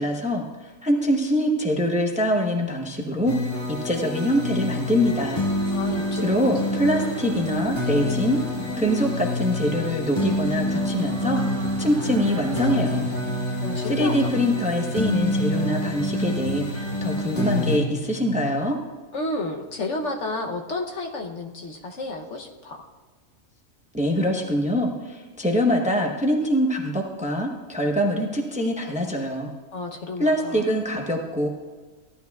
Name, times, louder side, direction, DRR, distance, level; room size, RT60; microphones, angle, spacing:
voice 1, 0.0-3.3 3.7-5.4 6.2-8.4 8.8-13.1 13.9-18.8 23.9-29.5 30.2-31.5, equal, 5° right, 1 dB, 0.8 m, -24 dB
sound 1, 3.3-17.8, left 2 dB, 40° left, 1.4 m, -27 dB
sound 2, 5.0-12.8, right 6 dB, 90° right, 1.1 m, -37 dB
voice 2, 5.7-7.1 13.6-14.3 19.1-22.9 29.7-30.8, left 2 dB, 60° left, 2 dB, 1.2 m, -32 dB
sound 3, 11.3-18.9, right 3 dB, 55° right, 0.8 m, -34 dB
16.0 x 12.0 x 2.4 m, 1.3 s
omnidirectional pair, 1.4 m